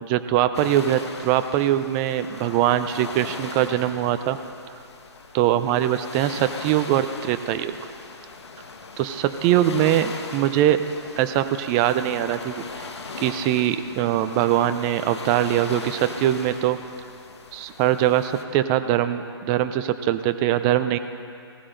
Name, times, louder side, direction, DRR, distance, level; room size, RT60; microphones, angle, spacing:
voice 1, 0.0-4.4 5.3-7.8 9.0-10.8 11.2-12.6 13.2-16.8 17.5-21.0, right 12 dB, 20° right, 10 dB, 0.5 m, -22 dB
sound 1, 0.5-18.4, left 4 dB, 80° left, 1.5 m, -39 dB
18.5 x 15.5 x 3.9 m, 2.5 s
hypercardioid pair, 150°, 14 cm